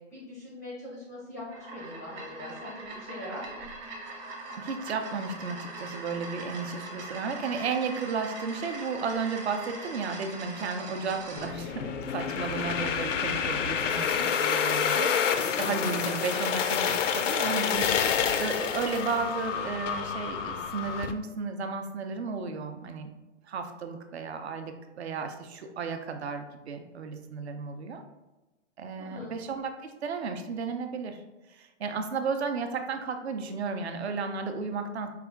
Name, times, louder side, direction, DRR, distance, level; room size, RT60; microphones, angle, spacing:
voice 1, 0.1-1.4 1.7-3.6 14.0-14.3 29.0-29.3, left 1 dB, 15° left, -6 dB, 0.4 m, -41 dB
sound 1, 1.4-11.5, right 2 dB, 35° right, 0.9 m, -41 dB
voice 2, 4.6-17.9 18.3-23.1 23.5-28.0 28.8-31.2 31.5-35.1, right 5 dB, 60° right, 6 dB, 0.6 m, -33 dB
sound 2, 11.4-21.1, left 7 dB, 85° left, 0.5 m, -28 dB
4.8 x 2.3 x 3.4 m, 1.1 s
hypercardioid pair, 170°, 36 cm